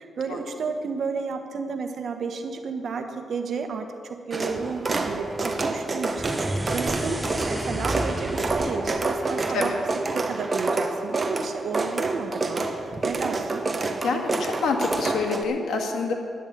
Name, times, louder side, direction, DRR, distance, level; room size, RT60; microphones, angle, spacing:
voice 1, 0.0-9.8 10.1-13.6, right 5 dB, 65° right, 6 dB, 1.3 m, -32 dB
sound 1, 4.3-15.4, right 3 dB, 30° right, 1.1 m, -28 dB
sound 2, 6.0-10.4, right 1 dB, 10° right, 1.1 m, -33 dB
voice 2, 14.0-16.1, left 4 dB, 85° left, 2 dB, 1.8 m, -26 dB
11.0 x 8.1 x 9.3 m, 2.3 s
cardioid pair, 90°, 0 cm